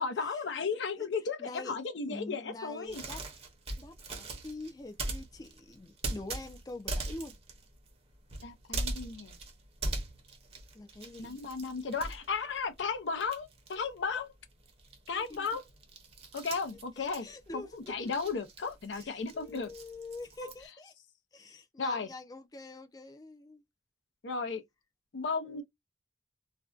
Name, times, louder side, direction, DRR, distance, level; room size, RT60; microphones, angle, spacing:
voice 1, 0.0-3.0 8.4-9.4 11.2-14.3 15.1-15.6 16.3-17.3 17.5-19.7 20.4-20.5 21.8-22.1 24.2-24.6 25.1-25.6, left 4 dB, 85° left, 0.6 m, -35 dB
voice 2, 1.4-1.8 2.1-3.2 3.8-7.3 10.7-11.4 15.3-15.5 17.0-18.3 18.6-20.9 21.3-23.6 25.4-25.6, left 2 dB, 20° left, 0.4 m, -45 dB
sound 1, 2.9-12.9 13.1-20.6, right 2 dB, 35° right, 0.7 m, -41 dB
2.5 x 2.2 x 2.3 m
head